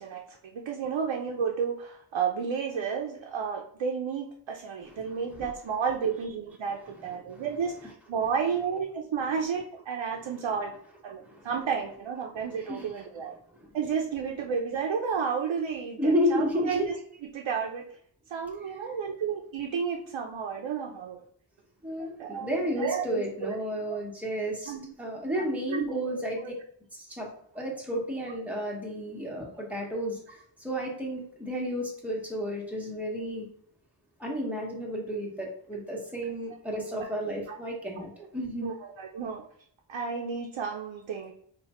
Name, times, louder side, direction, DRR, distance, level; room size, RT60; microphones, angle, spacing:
voice 1, 0.0-10.7 11.0-13.3 13.7-16.8 17.3-17.9 18.3-21.2 22.0-23.5 23.9-24.0 24.7-24.9 25.4-25.5 25.7-26.1 36.9-37.1 37.5-37.6 38.6-39.4 39.9-41.3, right 6 dB, 90° right, 1 dB, 0.6 m, -32 dB
voice 2, 5.0-5.5 7.2-7.4 11.2-11.5 12.7-12.9 13.5-13.7 16.0-16.9 21.8-26.4 26.9-27.3 27.5-33.5 34.2-38.7, equal, 5° right, -3 dB, 1.2 m, -32 dB
4.8 x 2.4 x 4.2 m, 0.62 s
wide cardioid pair, 130°, 45 cm